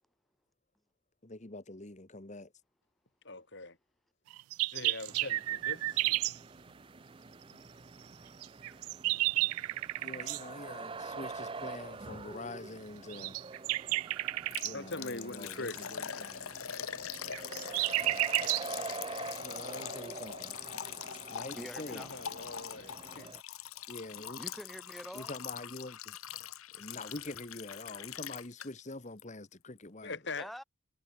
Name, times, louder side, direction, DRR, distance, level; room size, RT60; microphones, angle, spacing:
voice 1, 1.2-2.5 10.0-13.4 14.6-16.6 19.4-20.6 21.3-22.1 23.9-24.4 25.1-26.2 26.7-30.2, left 2 dB, 35° left, 1.4 m, -45 dB
voice 2, 3.2-3.8 4.7-6.2 14.7-16.3 21.9-23.3 30.0-30.5, left 3 dB, 55° left, 4.2 m, -42 dB
sound 1, 4.3-6.4 8.4-10.4 13.1-14.7 17.1-18.7, right 18 dB, 90° right, 0.3 m, -32 dB
sound 2, 5.1-23.4, right 3 dB, 25° right, 0.6 m, -46 dB
Liquid, 14.5-28.9 29.2-29.3 29.8-29.9, left 9 dB, 85° left, 1.2 m, -43 dB
voice 3, 21.6-22.1 24.4-25.3 30.4-30.6, equal, ahead, 1.7 m, -45 dB
head